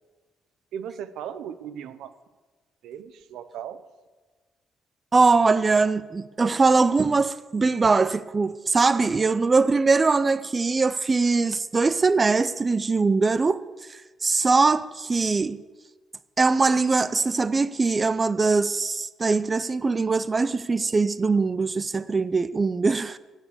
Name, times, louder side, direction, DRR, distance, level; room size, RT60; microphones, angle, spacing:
voice 1, 0.7-2.1 2.8-3.9, right 9 dB, 85° right, 0.6 m, -37 dB
voice 2, 5.1-15.6 16.4-23.2, right 4 dB, 30° right, 0.4 m, -22 dB
17.0 x 7.3 x 6.8 m
cardioid pair, 90°, 0 cm